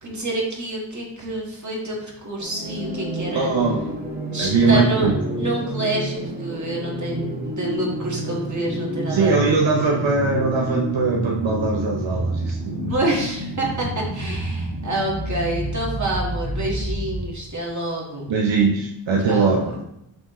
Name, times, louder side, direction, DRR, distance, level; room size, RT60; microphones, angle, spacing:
voice 1, 0.0-3.5 4.3-5.1 5.4-9.5 12.9-18.3 19.3-19.7, right 1 dB, 40° right, -3 dB, 1.7 m, -27 dB
sound 1, 2.4-17.4, right 1 dB, 20° right, 1.4 m, -29 dB
voice 2, 3.3-4.0 4.4-5.4 9.1-13.1 18.3-19.8, right 4 dB, 80° right, -1 dB, 0.8 m, -21 dB
6.3 x 4.8 x 3.1 m, 0.80 s
wide cardioid pair, 80°, 45 cm